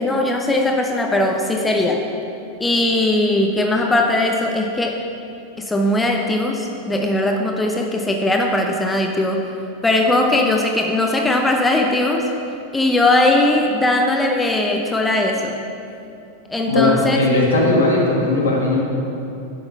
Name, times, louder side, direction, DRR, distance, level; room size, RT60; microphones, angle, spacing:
voice 1, 0.0-2.0 2.6-5.0 5.6-9.5 9.8-12.3 12.7-15.6 16.5-17.2, left 2 dB, 10° left, 2 dB, 0.5 m, -19 dB
voice 2, 16.7-18.8, left 2 dB, 70° left, -3 dB, 1.6 m, -17 dB
7.0 x 5.9 x 5.2 m, 2.7 s
figure-of-eight pair, 90°, 0 cm